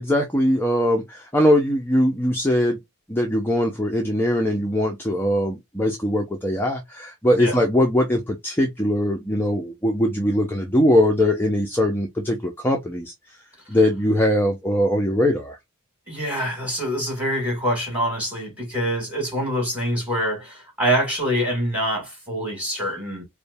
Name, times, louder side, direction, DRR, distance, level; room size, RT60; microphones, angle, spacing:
voice 1, 0.0-2.8 3.1-13.1 13.7-15.6, left 1 dB, 10° left, 0.6 m, -21 dB
voice 2, 16.1-23.2, equal, 5° right, 2.6 m, -25 dB
5.0 x 2.2 x 2.6 m
head